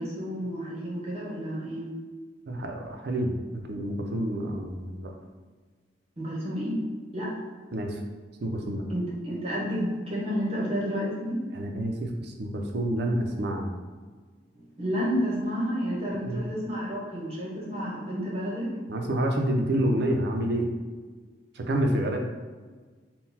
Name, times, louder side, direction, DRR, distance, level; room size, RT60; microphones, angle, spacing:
voice 1, 0.0-1.9 6.2-6.8 7.1-7.3 8.9-11.4 14.5-18.7, equal, 35° right, -5 dB, 1.0 m, -30 dB
voice 2, 2.5-3.4 3.7-5.1 7.7-8.0 8.4-8.8 11.5-13.7 16.3-16.4 18.9-20.7 21.6-22.2, right 1 dB, 55° right, 2 dB, 0.5 m, -28 dB
3.8 x 2.2 x 4.1 m, 1.4 s
head